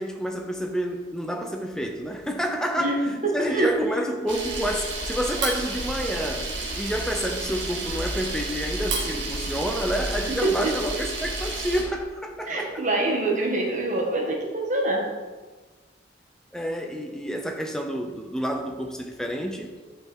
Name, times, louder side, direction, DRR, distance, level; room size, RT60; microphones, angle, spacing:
voice 1, 0.0-3.0 3.3-6.5 6.8-12.8 16.5-19.7, equal, 5° left, 3 dB, 0.8 m, -29 dB
voice 2, 2.8-3.8 10.3-10.7 12.5-15.1, right 2 dB, 40° right, -1 dB, 1.8 m, -25 dB
Camera, 4.3-11.8, right 2 dB, 80° right, 2.0 m, -31 dB
10.0 x 5.8 x 4.5 m, 1.4 s
head